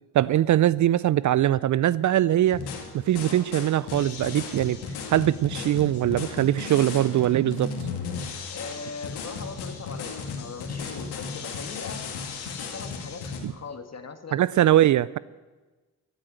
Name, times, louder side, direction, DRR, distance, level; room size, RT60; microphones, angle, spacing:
voice 1, 0.1-2.6 2.9-4.8 5.1-7.7 13.4-13.5 14.3-15.2, right 12 dB, 50° right, 20 dB, 0.4 m, -22 dB
sound 1, 2.5-13.4, left 5 dB, 80° left, 2.1 m, -35 dB
voice 2, 8.5-12.1 12.5-14.5, left 5 dB, 40° left, 7 dB, 1.8 m, -40 dB
14.0 x 8.3 x 7.8 m, 1.2 s
supercardioid pair, 50°, 38 cm